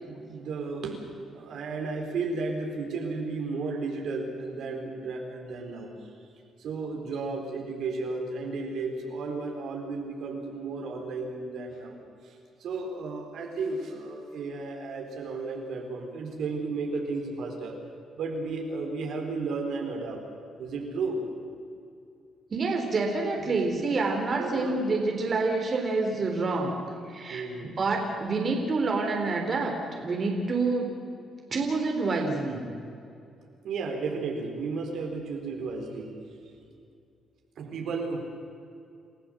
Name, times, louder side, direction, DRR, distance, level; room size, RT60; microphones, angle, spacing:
voice 1, 0.1-1.0 1.3-6.0 6.6-17.8 18.2-20.2 20.6-21.2 23.3-23.9 24.4-24.8 27.3-27.8 33.6-36.2 37.6-38.2, right 3 dB, 70° right, 2 dB, 4.4 m, -33 dB
voice 2, 22.5-26.8 27.1-27.4 27.8-30.9 31.5-32.7, right 3 dB, 40° right, 2 dB, 3.7 m, -27 dB
29.0 x 15.0 x 7.8 m, 2.5 s
cardioid pair, 90°, 0 cm